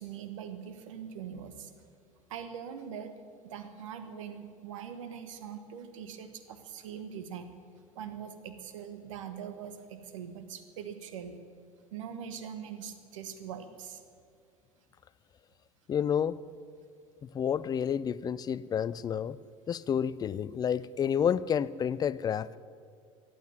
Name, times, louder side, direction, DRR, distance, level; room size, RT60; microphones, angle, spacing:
voice 1, 0.0-1.7 2.3-3.1 3.4-7.5 7.9-11.4 11.9-14.0, right 8 dB, 65° right, 10 dB, 1.3 m, -42 dB
voice 2, 15.9-16.4 17.2-19.4 19.7-22.6, left 8 dB, 20° left, 19 dB, 0.4 m, -30 dB
15.0 x 9.3 x 9.4 m, 2.2 s
figure-of-eight pair, 70°, 18 cm